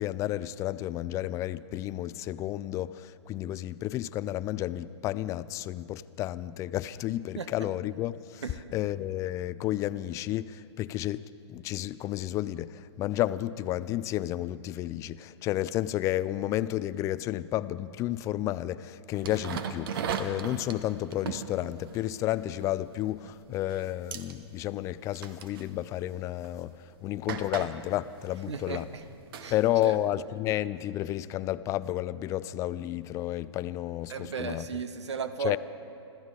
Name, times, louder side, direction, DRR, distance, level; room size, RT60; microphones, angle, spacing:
voice 1, 0.0-8.4 8.7-28.9 29.5-34.7 35.4-35.6, left 14 dB, 20° left, 16 dB, 0.3 m, -31 dB
sound 1, 19.1-23.3 23.6-23.8 24.1-24.3 25.1-25.7 26.4-26.5 27.3-30.1, right 7 dB, 50° right, 1.1 m, -38 dB
voice 2, 28.5-29.0 29.4-29.5 29.8-29.9 34.1-35.6, right 5 dB, 70° right, 11 dB, 0.9 m, -35 dB
26.0 x 14.5 x 3.8 m, 2.8 s
figure-of-eight pair, 115°, 15 cm